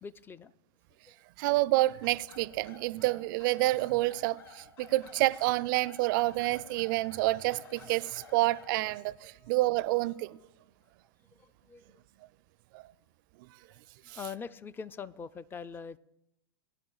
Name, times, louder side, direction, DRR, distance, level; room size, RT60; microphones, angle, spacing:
voice 1, 0.0-0.5 1.1-1.2 11.3-12.0 14.0-16.0, left 6 dB, 15° left, 0.4 m, -43 dB
voice 2, 1.4-10.4 12.7-12.8 14.1-14.2, right 19 dB, 50° right, 0.4 m, -28 dB
sound 1, 2.0-8.7, left 4 dB, 70° left, 5.3 m, -53 dB
Wind instrument woodwind instrument, 7.0-10.5, left 3 dB, 50° left, 3.2 m, -63 dB
22.0 x 10.5 x 2.3 m
hypercardioid pair, 105°, 14 cm